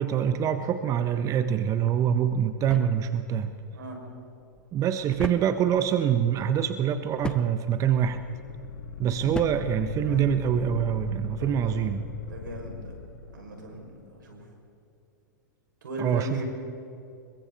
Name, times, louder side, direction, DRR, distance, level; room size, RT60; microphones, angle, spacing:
voice 1, 0.0-3.5 4.7-8.2 9.0-12.0 16.0-16.4, right 9 dB, 30° right, 10 dB, 1.0 m, -25 dB
sound 1, 1.8-10.7, left 3 dB, 10° left, 1.0 m, -42 dB
sound 2, 7.9-14.1, left 7 dB, 80° left, 1.3 m, -39 dB
voice 2, 11.4-11.8 12.1-13.0 13.3-14.4 15.8-16.5, right 1 dB, 80° right, 1 dB, 6.2 m, -38 dB
27.5 x 23.0 x 4.2 m, 2.8 s
hypercardioid pair, 105°, 10 cm